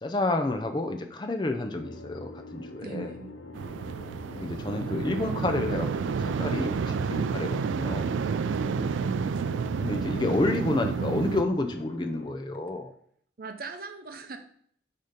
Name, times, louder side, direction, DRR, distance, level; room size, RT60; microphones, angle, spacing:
voice 1, 0.0-3.1 4.3-8.2 9.8-12.9, left 2 dB, 25° left, 6 dB, 0.4 m, -30 dB
sound 1, 1.7-12.3, left 2 dB, 80° left, 0.6 m, -44 dB
voice 2, 2.8-3.4 8.4-9.4 13.4-14.4, right 3 dB, 50° right, 6 dB, 0.6 m, -39 dB
sound 2, 3.5-11.4, right 6 dB, 90° right, 0.3 m, -30 dB
6.5 x 2.9 x 5.1 m, 0.63 s
head